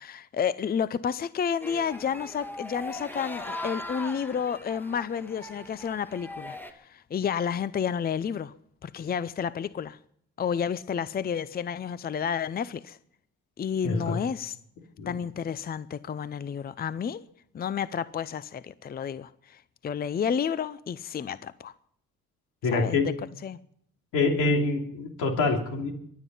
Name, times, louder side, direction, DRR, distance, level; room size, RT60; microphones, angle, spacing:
voice 1, 0.0-8.5 8.8-10.0 10.4-13.0 13.6-14.6 15.1-17.2 17.5-21.7 22.7-23.0 23.4-23.6, left 7 dB, 30° left, 0.5 m, -31 dB
sound 1, 1.6-6.7, left 1 dB, 5° left, 1.5 m, -39 dB
voice 2, 13.8-14.1 15.0-15.1 22.6-23.1 24.1-25.9, left 3 dB, 90° left, 3.0 m, -25 dB
23.0 x 9.4 x 5.5 m
cardioid pair, 90°, 30 cm